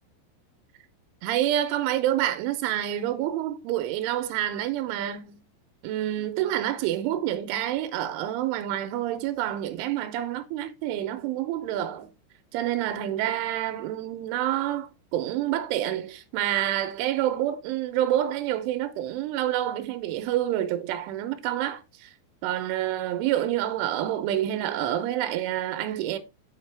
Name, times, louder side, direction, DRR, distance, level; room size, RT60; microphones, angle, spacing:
voice 1, 1.2-5.4 5.8-12.1 12.5-22.1 22.4-26.2, right 12 dB, 90° right, 3.3 m, -28 dB
7.3 x 5.8 x 3.3 m
omnidirectional pair, 5.4 m